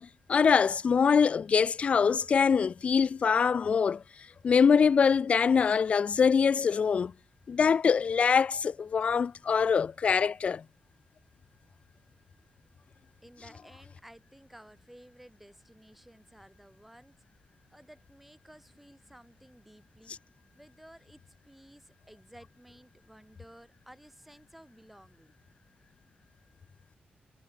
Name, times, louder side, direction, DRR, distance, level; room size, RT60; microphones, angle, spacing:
voice 1, 0.0-4.0 4.4-7.1 7.5-10.6, left 6 dB, 40° left, 0.4 m, -24 dB
voice 2, 13.2-17.1 17.7-20.2 20.5-25.3, right 1 dB, 5° right, 7.9 m, -55 dB
wide cardioid pair, 170°, 3 cm